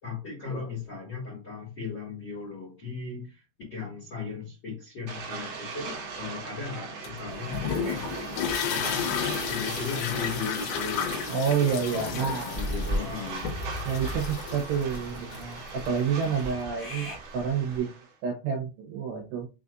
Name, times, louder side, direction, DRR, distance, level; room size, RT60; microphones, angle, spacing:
voice 1, 0.0-3.4 3.7-13.5, left 5 dB, 50° left, -3 dB, 1.3 m, -37 dB
sound 1, 5.1-18.1, right 5 dB, 65° right, 2.3 m, -40 dB
sound 2, 7.0-16.5, left 7 dB, 80° left, 3.4 m, -33 dB
voice 2, 11.3-12.6 13.9-17.9 18.2-19.5, right 6 dB, 80° right, 3 dB, 2.8 m, -29 dB
sound 3, 12.5-17.8, left 1 dB, 30° left, 1.3 m, -37 dB
7.0 x 2.5 x 2.6 m, 0.30 s
omnidirectional pair, 5.3 m